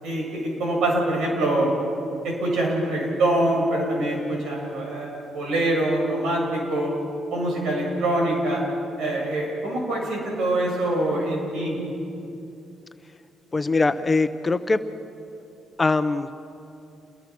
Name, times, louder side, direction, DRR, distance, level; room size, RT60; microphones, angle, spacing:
voice 1, 0.0-1.7 2.2-6.9 7.3-8.6 9.0-11.8, right 1 dB, 80° right, -1 dB, 7.9 m, -24 dB
voice 2, 13.5-14.8 15.8-16.4, left 3 dB, 25° left, 10 dB, 0.9 m, -22 dB
28.5 x 21.0 x 6.3 m, 2.7 s
cardioid pair, 90°, 0 cm